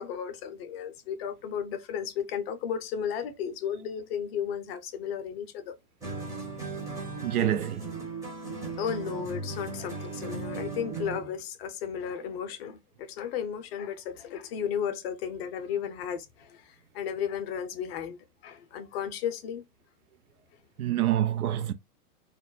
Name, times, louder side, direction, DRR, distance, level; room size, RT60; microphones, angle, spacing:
voice 1, 0.0-5.7 8.8-16.6 16.9-18.2 18.4-19.6, left 8 dB, 40° left, 0.6 m, -34 dB
sound 1, 6.0-11.3, right 4 dB, 5° right, 0.7 m, -37 dB
voice 2, 7.2-8.0 20.8-21.7, right 12 dB, 75° right, 0.6 m, -27 dB
2.3 x 2.0 x 3.8 m
hypercardioid pair, 115°, 45 cm